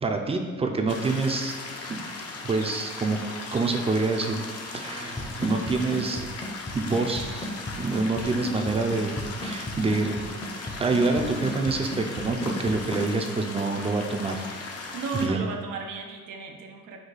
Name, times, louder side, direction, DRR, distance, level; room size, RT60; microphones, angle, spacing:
voice 1, 0.0-1.5 1.9-2.0 2.4-3.2 3.5-4.4 4.7-6.3 6.7-10.2 10.8-14.5 15.2-15.4, right 3 dB, 20° right, 4 dB, 0.4 m, -26 dB
sound 1, 0.9-15.3, left 3 dB, 55° left, 0.7 m, -38 dB
Drum kit / Snare drum / Bass drum, 5.2-13.1, left 1 dB, 20° left, 0.6 m, -34 dB
voice 2, 8.2-8.5 14.9-17.0, right 4 dB, 90° right, 3 dB, 0.6 m, -34 dB
4.8 x 2.3 x 4.0 m, 1.6 s
cardioid pair, 90°, 30 cm